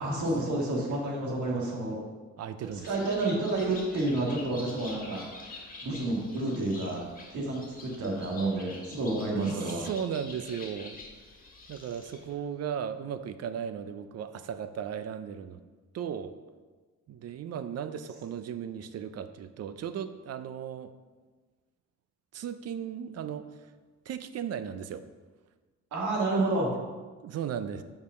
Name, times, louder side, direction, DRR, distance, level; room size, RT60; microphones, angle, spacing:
voice 1, 0.0-2.0 2.8-7.0 7.3-9.8 25.9-26.8, right 2 dB, 70° right, -2 dB, 2.0 m, -30 dB
voice 2, 2.4-2.9 9.4-11.0 11.7-15.6 15.9-16.3 17.1-20.9 22.3-23.5 24.1-25.1 27.2-27.8, right 8 dB, 55° right, 11 dB, 0.6 m, -36 dB
Bird, 2.6-12.3, left 2 dB, 30° left, 1.6 m, -47 dB
5.3 x 5.0 x 6.4 m, 1.3 s
cardioid pair, 90°, 30 cm